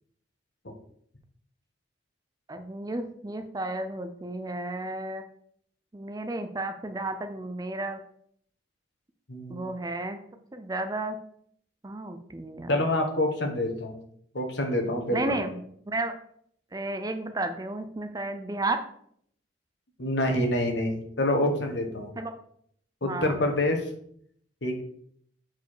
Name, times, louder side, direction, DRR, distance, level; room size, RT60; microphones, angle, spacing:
voice 1, 2.5-5.2 5.9-8.0 9.5-10.2 10.5-11.2 11.8-12.9 15.1-15.6 15.9-16.2 16.7-18.8 22.2-22.3 23.0-23.4, right 2 dB, 20° right, 8 dB, 0.4 m, -32 dB
voice 2, 9.3-9.7 12.7-14.0 14.3-15.2 20.0-22.1 23.0-23.9 24.6-24.8, left 1 dB, 60° left, 4 dB, 1.4 m, -27 dB
6.6 x 4.6 x 4.9 m, 0.65 s
head